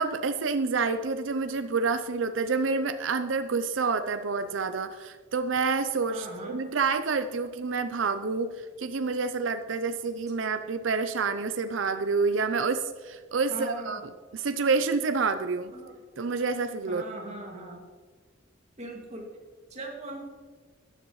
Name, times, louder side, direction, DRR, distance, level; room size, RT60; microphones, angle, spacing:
voice 1, 0.0-14.0 14.3-15.7 16.2-17.0, right 4 dB, 80° right, 9 dB, 0.6 m, -28 dB
voice 2, 6.1-6.6 13.5-14.0 15.7-15.9 16.9-17.8 18.8-19.3 19.7-20.2, right 1 dB, 35° right, 0 dB, 2.3 m, -40 dB
13.5 x 10.0 x 3.2 m, 1.4 s
head